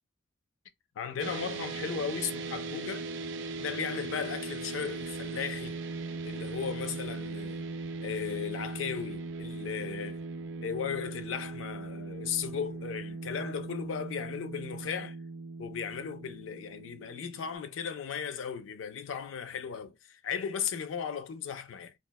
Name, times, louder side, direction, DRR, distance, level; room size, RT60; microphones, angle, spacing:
voice 1, 1.0-3.1 3.6-5.8 6.2-7.6 8.0-10.2 10.6-15.2 15.6-21.9, left 7 dB, 80° left, 0.4 m, -36 dB
sound 1, 1.2-17.6, right 3 dB, 65° right, 0.4 m, -39 dB
3.0 x 2.1 x 2.2 m
head